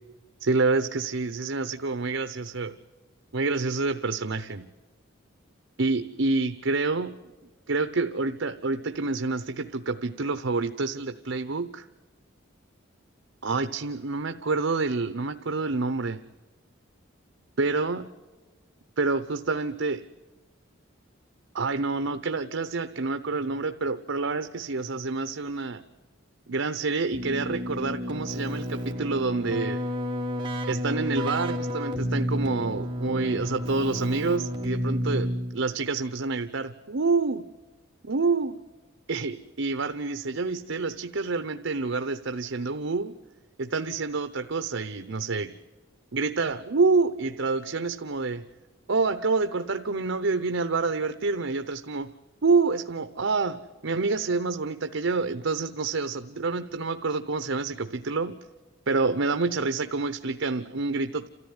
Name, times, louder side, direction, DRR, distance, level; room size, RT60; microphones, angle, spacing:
voice 1, 0.4-2.8 3.3-4.7 5.8-7.2 7.7-11.8 13.4-16.2 17.6-18.1 19.0-20.0 21.5-25.8 26.5-29.8 30.7-37.4 38.0-38.5 39.1-43.2 43.6-45.5 46.1-48.4 48.9-52.1 52.4-58.4 58.9-61.3, right 3 dB, 70° right, 9 dB, 0.8 m, -27 dB
Keyboard (musical), 27.1-35.8, equal, 25° right, 2.3 m, -31 dB
29.5 x 14.0 x 9.7 m, 1.3 s
head